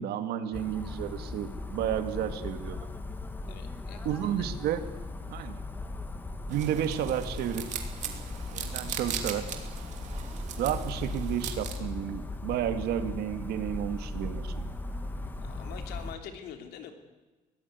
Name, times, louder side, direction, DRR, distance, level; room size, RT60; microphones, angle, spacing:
voice 1, 0.0-2.9 4.1-4.8 5.3-5.6 6.5-7.8 8.5-9.5 10.6-14.7, right 10 dB, 80° right, 9 dB, 2.2 m, -32 dB
sound 1, 0.5-16.2, left 2 dB, 10° left, 1.4 m, -38 dB
voice 2, 3.5-4.5 15.4-16.9, left 8 dB, 85° left, 6 dB, 3.3 m, -45 dB
sound 2, 6.5-11.8, right 8 dB, 50° right, 2.8 m, -39 dB
23.5 x 17.0 x 9.5 m, 1.2 s
cardioid pair, 170°, 16 cm